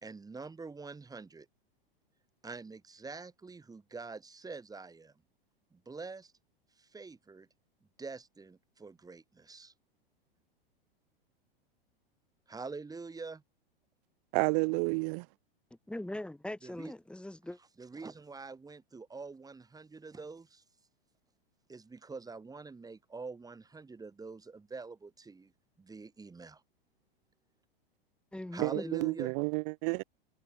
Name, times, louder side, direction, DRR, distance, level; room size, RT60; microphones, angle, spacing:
voice 1, 0.0-1.5 2.4-5.1 5.7-6.3 6.8-7.5 8.0-9.7 12.5-13.4 16.6-16.9 17.8-20.6 21.7-25.5 25.8-26.6 28.5-29.3, right 4 dB, 10° right, 4.2 m, -45 dB
voice 2, 14.3-15.3 28.6-30.0, right 35 dB, 45° right, 0.5 m, -30 dB
voice 3, 15.9-17.6 28.3-29.0, left 1 dB, 5° left, 4.0 m, -41 dB
hypercardioid pair, 100°, 30 cm